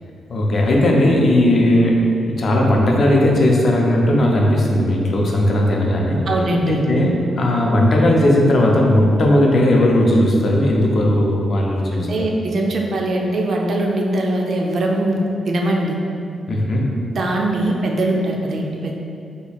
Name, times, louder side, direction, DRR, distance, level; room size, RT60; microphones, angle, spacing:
voice 1, 0.3-6.2 6.7-12.1 16.5-16.9, left 1 dB, 50° left, -1 dB, 0.5 m, -16 dB
voice 2, 6.3-6.8 11.9-16.0 17.1-19.0, right 1 dB, 50° right, 0 dB, 0.4 m, -21 dB
2.9 x 2.2 x 4.1 m, 2.6 s
cardioid pair, 130°, 0 cm